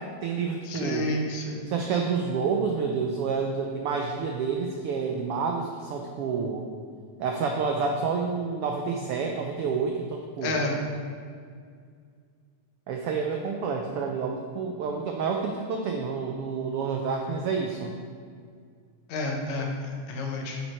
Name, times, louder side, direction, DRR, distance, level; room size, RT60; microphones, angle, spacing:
voice 1, 0.0-1.1 1.7-6.7 7.2-10.6 12.9-18.0, right 5 dB, 85° right, 2 dB, 1.2 m, -29 dB
voice 2, 0.7-1.7 10.4-10.7 19.1-20.6, left 2 dB, 75° left, 1 dB, 2.4 m, -30 dB
9.5 x 7.3 x 4.3 m, 2.1 s
omnidirectional pair, 3.3 m